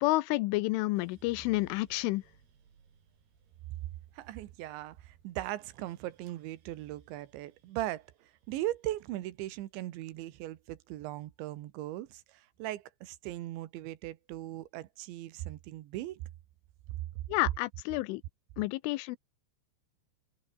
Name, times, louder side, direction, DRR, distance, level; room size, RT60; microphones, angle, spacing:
voice 1, 0.0-2.2 17.3-18.2 18.6-19.2, left 20 dB, 85° left, 3.3 m, -30 dB
sound 1, 1.0-11.2 11.6-12.4, right 6 dB, 55° right, 5.9 m, -63 dB
voice 2, 4.1-16.2, right 15 dB, 75° right, 3.5 m, -39 dB
omnidirectional pair, 5.5 m